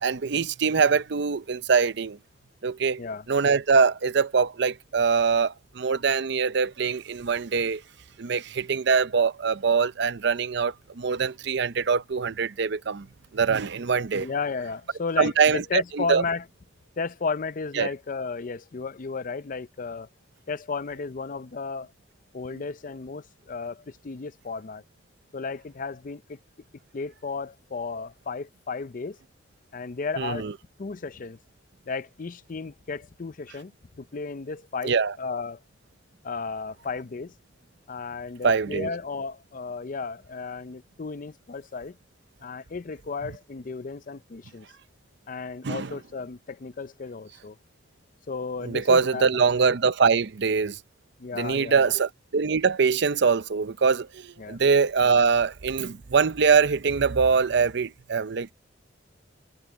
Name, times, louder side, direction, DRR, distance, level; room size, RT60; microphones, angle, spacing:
voice 1, 0.0-2.2 2.6-3.0 3.3-7.8 8.2-13.1 13.3-14.3 15.2-16.2 17.8-17.9 30.2-30.5 34.8-35.1 38.4-38.9 45.6-45.9 48.6-50.8 51.3-58.5, right 5 dB, 65° right, 0.6 m, -23 dB
voice 2, 14.2-16.5 17.0-20.1 20.5-21.9 22.3-24.8 25.3-26.4 26.9-29.2 29.7-30.5 30.8-31.4 31.9-35.6 36.2-37.3 37.9-42.0 42.4-44.7 45.3-47.6 48.3-49.3 51.2-51.9 54.4-54.6, left 4 dB, 45° left, 0.5 m, -34 dB
head